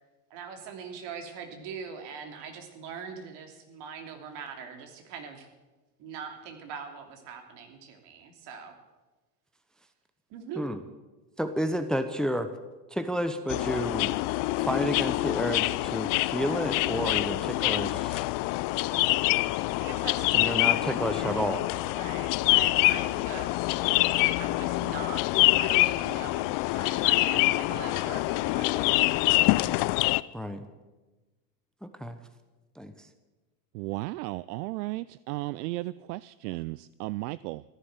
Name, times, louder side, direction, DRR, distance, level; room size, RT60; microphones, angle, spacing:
voice 1, 0.3-5.5 6.0-8.7 10.3-10.6 19.8-21.5 21.9-23.8 24.4-29.0, right 6 dB, 60° right, 5 dB, 3.1 m, -42 dB
voice 2, 11.4-12.5 12.9-14.1 14.6-18.3 20.3-21.6 30.3-30.7 31.8-32.2 32.8-33.1, equal, ahead, 10 dB, 0.8 m, -31 dB
sound 1, 13.5-30.2, left 21 dB, 45° left, 0.5 m, -26 dB
voice 3, 33.7-37.6, right 19 dB, 75° right, 19 dB, 0.5 m, -35 dB
14.5 x 11.0 x 8.1 m, 1.2 s
supercardioid pair, 105°, 48 cm